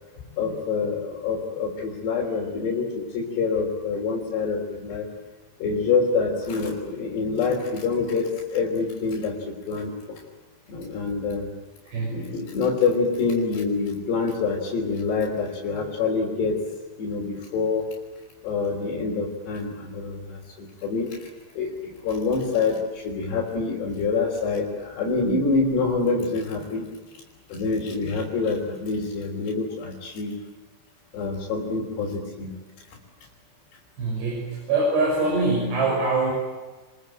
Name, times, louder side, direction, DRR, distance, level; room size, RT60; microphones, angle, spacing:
voice 1, 0.2-5.1 5.6-10.2 10.7-11.5 12.1-16.7 17.0-17.9 18.4-21.3 21.6-26.9 27.5-30.4 31.1-32.5 32.9-33.0, left 4 dB, 75° left, -3 dB, 5.8 m, -26 dB
voice 2, 11.9-12.3 34.0-36.3, right 3 dB, 80° right, -2 dB, 8.6 m, -24 dB
29.5 x 22.5 x 9.0 m, 1.3 s
omnidirectional pair, 4.8 m